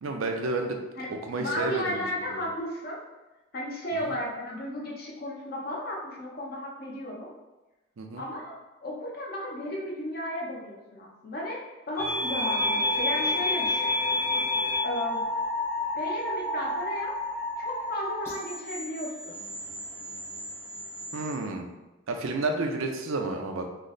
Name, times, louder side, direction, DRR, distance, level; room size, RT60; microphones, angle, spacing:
voice 1, 0.0-2.4 4.0-4.1 8.0-8.2 21.1-21.7 22.1-23.7, right 2 dB, 85° right, 3 dB, 0.5 m, -31 dB
voice 2, 1.0-3.0 3.5-7.3 8.1-8.6 8.8-13.9 14.8-15.2 16.0-17.1 17.6-19.3, left 1 dB, 45° left, -2 dB, 0.6 m, -34 dB
sound 1, 12.0-21.4, left 1 dB, 10° left, 0.8 m, -30 dB
3.2 x 2.0 x 3.8 m, 1.1 s
head